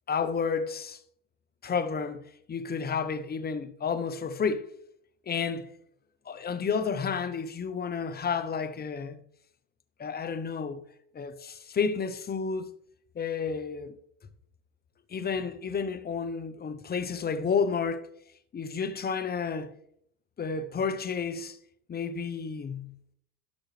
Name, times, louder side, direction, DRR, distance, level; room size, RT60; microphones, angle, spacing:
voice 1, 0.1-1.0 1.6-2.2 2.5-4.7 5.3-5.7 6.3-9.2 10.0-10.8 11.1-12.7 13.1-14.0 15.1-18.1 18.5-19.7 20.4-21.6 21.9-22.9, left 5 dB, 25° left, 0.8 m, -31 dB
16.0 x 6.2 x 3.3 m
supercardioid pair, 105°, 42 cm